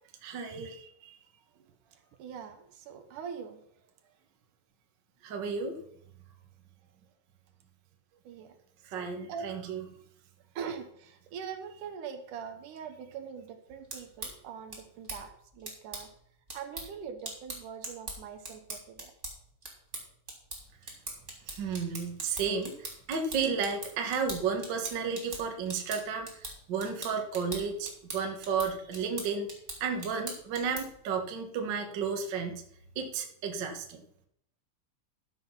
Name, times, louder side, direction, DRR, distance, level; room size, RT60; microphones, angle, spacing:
voice 1, 0.2-1.2 5.2-5.8 8.9-9.8 21.5-29.5 29.8-32.6 32.9-34.0, right 5 dB, 45° right, 4 dB, 1.6 m, -33 dB
voice 2, 2.2-3.6 8.3-8.5 8.9-9.5 10.6-16.1 16.5-19.1, right 7 dB, 75° right, 7 dB, 2.6 m, -42 dB
sound 1, 13.7-31.1, right 2 dB, 20° right, 3.3 m, -43 dB
12.5 x 7.7 x 5.7 m, 0.70 s
omnidirectional pair, 3.7 m